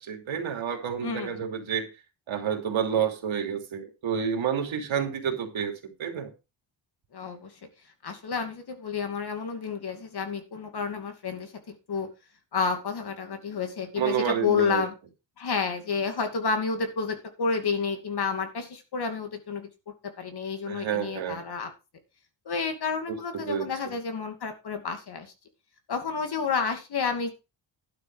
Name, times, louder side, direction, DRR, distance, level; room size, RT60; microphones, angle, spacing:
voice 1, 0.0-1.9 2.3-6.3 14.0-14.8 20.7-21.4 23.1-23.2 23.4-23.7, right 7 dB, 80° right, 4 dB, 3.1 m, -29 dB
voice 2, 1.0-1.4 7.1-7.5 8.0-12.1 12.5-14.9 15.4-19.7 20.2-21.7 22.4-25.3 25.9-27.3, left 5 dB, 55° left, 7 dB, 2.6 m, -30 dB
12.0 x 7.7 x 4.8 m, 0.29 s
wide cardioid pair, 150°, 47 cm